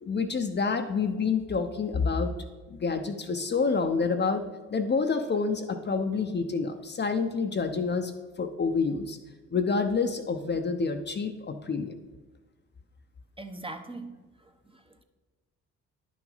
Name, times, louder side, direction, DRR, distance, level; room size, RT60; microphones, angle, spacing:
voice 1, 0.0-2.3 2.7-4.4 4.7-8.1 8.4-9.2 9.5-12.0, left 4 dB, 30° left, 6 dB, 0.7 m, -28 dB
voice 2, 13.4-15.0, right 2 dB, 15° right, 6 dB, 0.8 m, -42 dB
10.5 x 6.2 x 3.9 m, 1.2 s
supercardioid pair, 60°, 34 cm